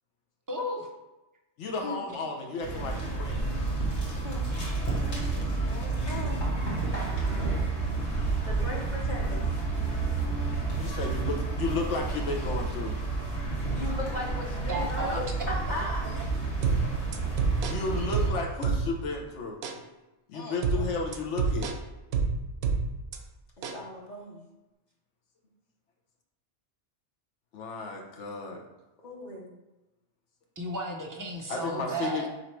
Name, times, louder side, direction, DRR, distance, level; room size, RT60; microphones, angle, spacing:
voice 1, 0.5-0.9 14.7-15.2 30.6-32.3, right 1 dB, 25° right, 0 dB, 0.5 m, -33 dB
voice 2, 1.6-3.4 10.8-13.0 17.7-19.6 20.3-21.7 27.5-28.6 31.5-32.3, left 3 dB, 90° left, 0 dB, 1.0 m, -33 dB
sound 1, 2.6-18.3, right 3 dB, 75° left, 1.4 m, -30 dB
voice 3, 5.6-6.4 8.5-9.5 13.7-16.0 20.3-21.2 23.7-24.5 29.0-29.5, left 2 dB, 45° left, -2 dB, 0.9 m, -37 dB
sound 2, 16.6-19.2 19.6-19.8 20.6-23.2 23.6-23.8, right 5 dB, 75° right, 0.8 m, -29 dB
3.9 x 3.0 x 4.4 m, 1.0 s
omnidirectional pair, 1.2 m